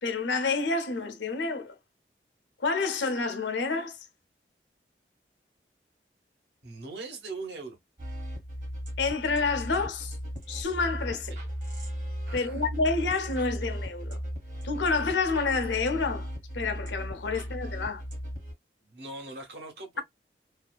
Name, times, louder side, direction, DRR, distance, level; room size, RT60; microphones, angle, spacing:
voice 1, 0.0-1.8 2.6-4.0 9.0-10.2 10.5-11.3 12.3-14.2 14.6-16.3 16.5-18.0, left 4 dB, 90° left, 0.6 m, -28 dB
voice 2, 6.6-7.8 11.3-11.4 12.3-12.6 17.3-17.6 18.8-20.0, right 3 dB, 75° right, 1.1 m, -41 dB
sound 1, 8.0-18.5, equal, 45° right, 1.0 m, -36 dB
2.7 x 2.2 x 2.2 m
head